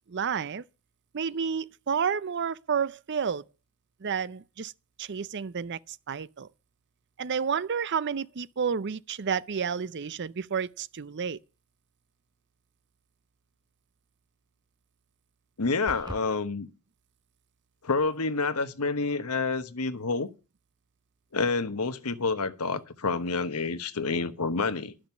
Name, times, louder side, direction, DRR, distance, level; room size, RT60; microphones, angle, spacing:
voice 1, 0.1-0.6 1.1-3.4 4.0-4.7 5.0-6.5 7.2-11.4, right 6 dB, 50° right, 0.5 m, -30 dB
voice 2, 15.6-16.7 17.8-20.3 21.3-24.9, left 4 dB, 85° left, 1.1 m, -28 dB
sound 1, 15.9-16.3, right 1 dB, 20° right, 1.2 m, -39 dB
12.0 x 6.3 x 7.1 m
head